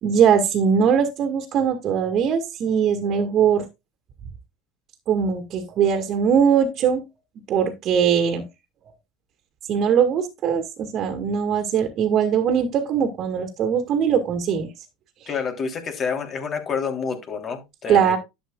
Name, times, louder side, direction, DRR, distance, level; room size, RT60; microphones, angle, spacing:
voice 1, 0.0-3.6 5.1-7.0 7.5-8.5 9.7-14.7 17.9-18.2, right 7 dB, 45° right, 6 dB, 1.9 m, -21 dB
voice 2, 15.3-18.2, left 6 dB, 40° left, 4 dB, 3.1 m, -28 dB
11.5 x 7.9 x 2.3 m, 0.22 s
hypercardioid pair, 80°, 0 cm